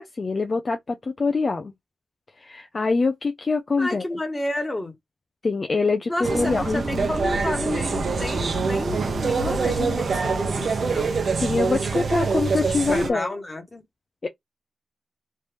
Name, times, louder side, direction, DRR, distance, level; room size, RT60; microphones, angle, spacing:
voice 1, 0.0-1.7 2.4-4.0 5.4-7.1 9.9-10.0 11.4-13.3 14.2-14.3, left 4 dB, 45° left, 0.6 m, -24 dB
voice 2, 3.8-4.9 6.1-11.1 12.6-13.8, left 1 dB, 20° left, 1.5 m, -31 dB
sound 1, 6.2-13.1, right 4 dB, 65° right, 0.8 m, -25 dB
3.3 x 2.6 x 3.3 m
cardioid pair, 65°, 0 cm